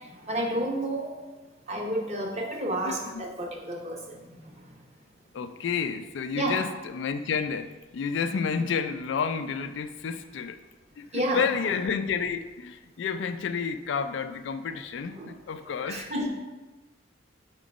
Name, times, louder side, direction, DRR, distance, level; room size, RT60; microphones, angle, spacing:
voice 1, 0.3-1.1 1.7-4.4 6.4-6.6 11.1-11.7 15.1-15.3 15.8-16.3, right 1 dB, 35° right, 0 dB, 0.9 m, -30 dB
voice 2, 2.8-3.3 5.3-10.6 11.0-16.1, left 6 dB, 65° left, 9 dB, 0.3 m, -30 dB
5.0 x 3.7 x 5.2 m, 1.2 s
head